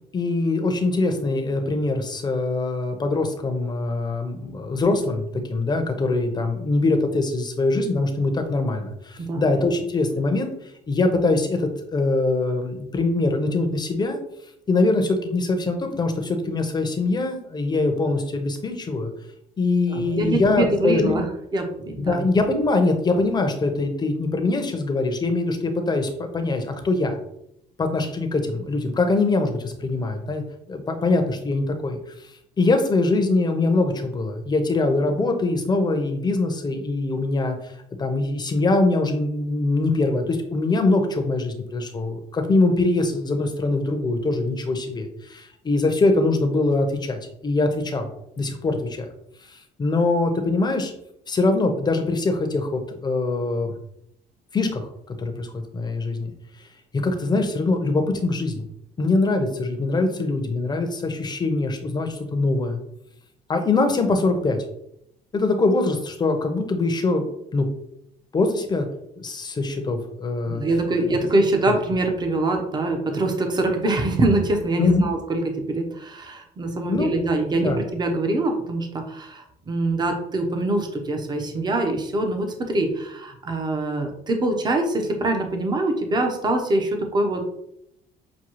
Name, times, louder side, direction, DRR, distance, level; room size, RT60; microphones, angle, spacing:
voice 1, 0.1-10.5 10.9-14.2 14.7-19.1 19.6-21.2 22.0-27.2 27.8-30.4 30.7-32.0 32.6-37.7 38.0-48.1 48.4-49.1 49.5-50.9 51.3-53.7 54.5-56.3 56.9-58.6 59.0-62.8 63.5-64.6 65.3-67.2 67.5-67.7 68.3-68.9 69.2-70.6 71.0-71.2 71.7-71.8 74.8-75.1 76.8-77.1 77.6-77.8, left 2 dB, 25° left, 5 dB, 0.7 m, -23 dB
voice 2, 19.9-21.3 21.5-22.2 70.5-75.4 75.7-87.4, right 2 dB, 25° right, 4 dB, 0.7 m, -24 dB
6.1 x 2.3 x 3.0 m, 0.76 s
cardioid pair, 110°, 17 cm